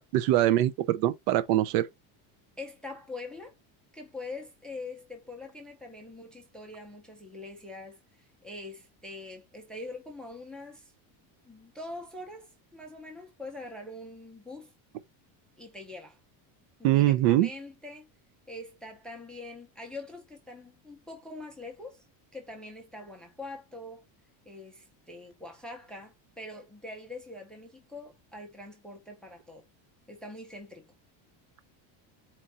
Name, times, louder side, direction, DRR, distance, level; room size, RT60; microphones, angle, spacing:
voice 1, 0.0-1.9 16.8-17.5, right 14 dB, 75° right, 0.7 m, -23 dB
voice 2, 2.6-3.6 3.9-10.9 11.4-14.7 15.6-16.2 16.8-18.1 18.5-22.0 22.3-24.0 24.5-29.6 30.1-30.9, left 2 dB, ahead, 0.4 m, -43 dB
4.4 x 2.4 x 4.2 m
cardioid pair, 170°, 50 cm